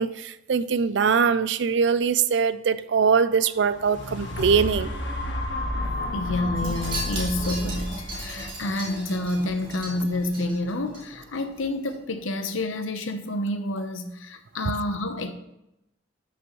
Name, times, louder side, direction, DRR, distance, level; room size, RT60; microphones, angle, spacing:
voice 1, 0.0-4.9, right 6 dB, 60° right, 0.4 m, -22 dB
sound 1, 3.6-11.6 12.2-12.3, left 1 dB, 60° left, 1.2 m, -32 dB
voice 2, 6.1-15.3, left 2 dB, 80° left, 0.9 m, -29 dB
Wind chime, 6.6-11.0 11.3-11.6 11.9-12.0, right 2 dB, 25° right, 2.7 m, -37 dB
12.0 x 6.2 x 3.1 m
head